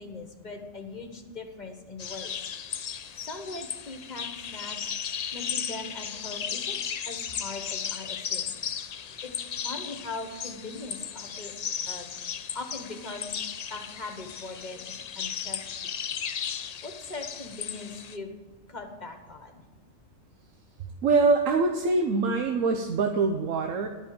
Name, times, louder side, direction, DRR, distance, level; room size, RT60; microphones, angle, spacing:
voice 1, 0.0-2.4 3.2-4.8 5.3-6.8 7.0-8.5 9.2-11.5 11.9-12.1 12.5-13.4 13.7-15.9 16.8-18.3 18.7-19.6, left 3 dB, 35° left, 4 dB, 1.3 m, -40 dB
sound 1, 2.0-18.2, left 8 dB, 85° left, 0.3 m, -35 dB
voice 2, 21.0-23.9, right 4 dB, 80° right, 4 dB, 1.2 m, -24 dB
11.5 x 5.4 x 8.9 m, 1.2 s
omnidirectional pair, 1.3 m